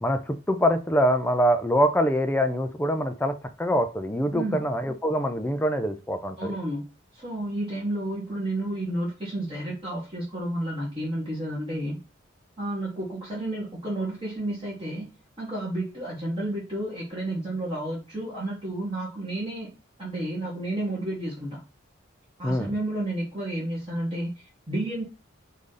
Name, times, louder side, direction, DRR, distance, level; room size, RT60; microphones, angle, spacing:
voice 1, 0.0-6.5 22.4-22.7, equal, 10° left, 8 dB, 0.4 m, -24 dB
voice 2, 4.3-4.6 6.4-12.0 12.6-15.1 15.4-19.7 20.0-21.6 22.4-25.0, right 1 dB, 25° right, -6 dB, 1.3 m, -31 dB
4.8 x 2.7 x 3.7 m, 0.32 s
head